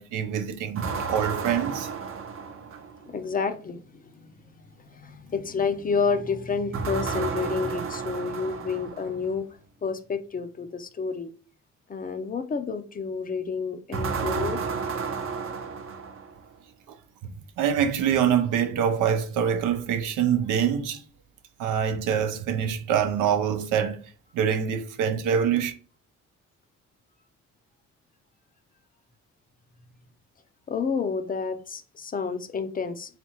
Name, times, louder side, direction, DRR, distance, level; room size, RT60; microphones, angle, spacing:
voice 1, 0.0-1.9 17.6-21.0 21.6-24.0 24.3-25.7, right 8 dB, 90° right, 0.6 m, -25 dB
sound 1, 0.8-3.1 6.7-9.2 13.9-16.5, right 5 dB, 45° right, 0.6 m, -32 dB
voice 2, 3.1-9.4 9.8-11.3 11.9-14.6 30.7-33.2, left 5 dB, 30° left, 0.5 m, -30 dB
3.8 x 3.3 x 2.9 m
cardioid pair, 90°, 30 cm